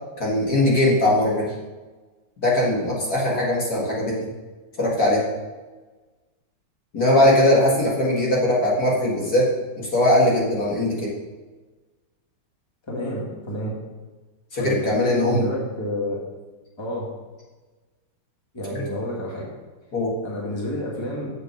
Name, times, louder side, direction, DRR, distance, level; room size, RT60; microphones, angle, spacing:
voice 1, 0.2-1.5 2.4-4.3 4.8-5.2 6.9-9.5 9.8-11.1 14.5-15.5 18.7-18.8 19.9-20.1, left 1 dB, 45° left, -5 dB, 2.2 m, -20 dB
voice 2, 12.9-13.8 14.6-16.2 16.8-17.1 18.5-19.5 20.2-21.3, equal, 15° left, -3 dB, 1.8 m, -29 dB
7.3 x 6.8 x 6.0 m, 1.3 s
omnidirectional pair, 2.4 m